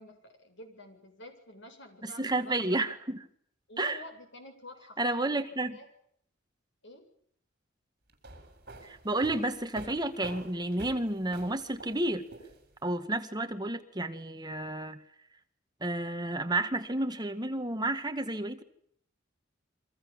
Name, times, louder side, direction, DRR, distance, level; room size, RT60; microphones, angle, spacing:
voice 1, 0.0-2.8 3.7-5.3 5.7-5.9 6.8-7.0, left 1 dB, 65° left, 6 dB, 7.9 m, -49 dB
voice 2, 2.0-3.2 3.8-4.0 5.0-5.8 8.8-12.3 12.8-15.0 15.8-18.6, right 2 dB, 20° right, 8 dB, 1.8 m, -31 dB
sound 1, 8.1-12.9, right 2 dB, 50° right, 7.8 m, -47 dB
29.5 x 24.5 x 7.5 m, 0.67 s
head